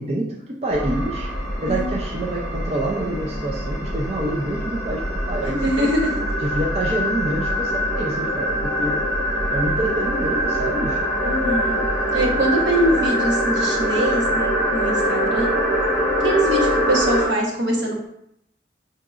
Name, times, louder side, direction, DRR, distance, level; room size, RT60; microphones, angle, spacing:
voice 1, 0.0-1.3 1.6-5.9 6.4-9.0 9.5-11.0, right 1 dB, 35° right, -3 dB, 0.4 m, -27 dB
sound 1, 0.7-17.3, equal, 5° right, 1.1 m, -23 dB
voice 2, 5.6-6.1 11.2-11.9 12.1-15.5 16.2-18.1, right 1 dB, 80° right, -2 dB, 1.0 m, -23 dB
5.0 x 2.8 x 2.4 m, 0.75 s
head